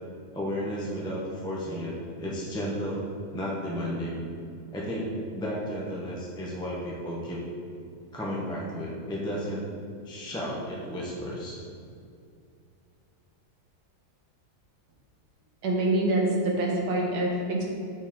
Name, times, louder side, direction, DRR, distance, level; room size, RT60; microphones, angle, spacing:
voice 1, 0.3-3.1 3.3-4.2 4.7-7.4 8.1-9.7 10.0-11.6, equal, 5° left, -5 dB, 0.4 m, -33 dB
voice 2, 15.6-17.6, right 1 dB, 90° right, -1 dB, 1.7 m, -25 dB
6.5 x 4.8 x 3.6 m, 2.4 s
omnidirectional pair, 1.7 m